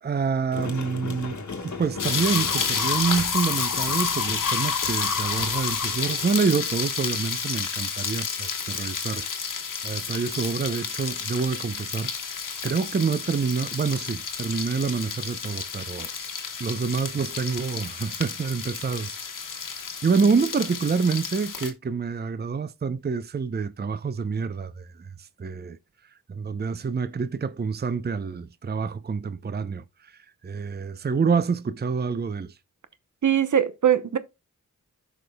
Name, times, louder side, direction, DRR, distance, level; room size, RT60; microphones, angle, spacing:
voice 1, 0.0-9.3 9.8-12.4 12.6-16.1 16.6-19.7 20.0-25.8 26.3-32.6, right 5 dB, 30° right, 0.6 m, -27 dB
sound 1, 0.5-6.5, left 5 dB, 65° left, 1.3 m, -32 dB
sound 2, 2.0-21.7, left 6 dB, 85° left, 1.2 m, -31 dB
voice 2, 33.2-34.2, right 9 dB, 65° right, 0.8 m, -21 dB
14.0 x 5.1 x 2.2 m
cardioid pair, 40°, 31 cm